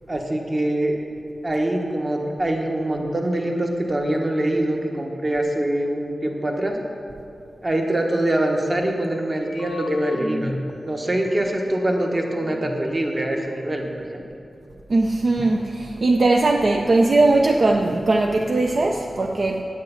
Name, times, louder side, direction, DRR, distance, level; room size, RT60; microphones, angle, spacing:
voice 1, 0.1-1.0 1.4-6.8 7.6-10.6 10.8-13.8 14.1-14.2, right 1 dB, 25° right, 1 dB, 1.2 m, -24 dB
sound 1, 9.4-10.7 11.2-11.3 11.6-12.9, left 2 dB, 40° left, 0.6 m, -30 dB
voice 2, 14.9-19.6, right 2 dB, 50° right, 2 dB, 0.5 m, -19 dB
8.8 x 6.6 x 8.2 m, 2.5 s
wide cardioid pair, 150°, 0 cm